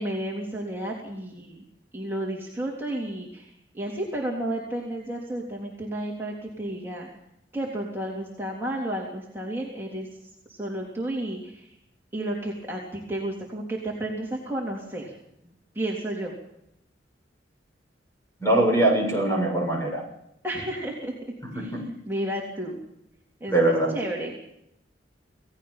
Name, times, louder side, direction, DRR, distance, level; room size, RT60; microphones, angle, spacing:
voice 1, 0.0-1.6 1.9-7.1 7.5-10.1 10.5-11.7 12.1-15.1 15.8-16.4 20.4-22.8 23.4-24.5, right 1 dB, 15° right, -4 dB, 3.5 m, -32 dB
voice 2, 18.4-20.0 21.5-21.8 23.5-23.9, right 1 dB, 15° left, 1 dB, 7.2 m, -22 dB
28.0 x 17.5 x 5.7 m, 0.80 s
head